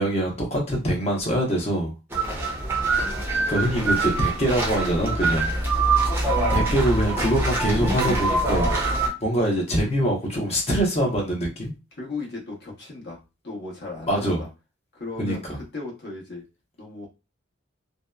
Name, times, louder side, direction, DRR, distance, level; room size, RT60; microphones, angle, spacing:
voice 1, 0.0-1.9 3.5-5.5 6.5-8.7 9.2-11.7 14.1-14.4 15.2-15.3, equal, 35° left, 0.8 m, -24 dB
sound 1, 2.1-9.1, right 2 dB, 10° right, 0.6 m, -24 dB
voice 2, 5.2-5.6 8.8-8.9 11.9-13.2 13.4-14.5 14.9-16.4 16.8-17.1, left 3 dB, 55° left, 1.0 m, -36 dB
2.7 x 2.0 x 2.2 m
head